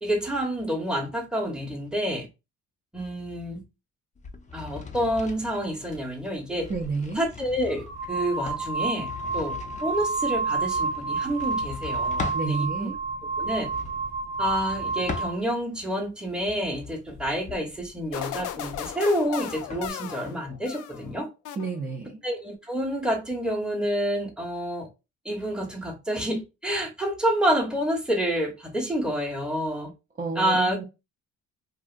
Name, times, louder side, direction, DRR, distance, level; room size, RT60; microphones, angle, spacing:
voice 1, 0.0-2.3 2.9-3.6 4.5-6.7 7.2-9.1 9.3-12.9 13.4-13.7 14.4-21.3 22.2-24.9 25.2-29.9 30.4-30.8, equal, 5° right, 0.9 m, -28 dB
sound 1, 4.2-12.5 13.3-15.8 16.3-19.9, left 4 dB, 25° left, 0.5 m, -41 dB
voice 2, 6.7-7.3 12.3-13.0 21.6-22.2 30.2-30.8, right 4 dB, 30° right, 0.6 m, -30 dB
sound 2, 6.7-6.9 7.7-15.4, right 4 dB, 60° right, 0.8 m, -30 dB
sound 3, 18.1-21.1 21.4-22.1, left 10 dB, 90° left, 0.5 m, -36 dB
2.9 x 2.5 x 2.4 m
cardioid pair, 90°, 30 cm